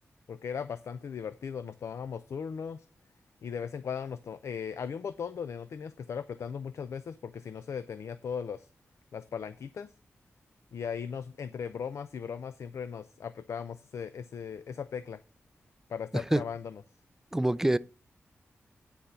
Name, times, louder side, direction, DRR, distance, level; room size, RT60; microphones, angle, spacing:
voice 1, 0.3-2.9 3.4-8.7 9.1-9.9 10.7-15.2 15.9-16.8, left 7 dB, 80° left, 0.5 m, -38 dB
voice 2, 17.3-17.8, right 1 dB, 10° right, 0.4 m, -26 dB
9.6 x 4.3 x 6.6 m
wide cardioid pair, 100°, 5 cm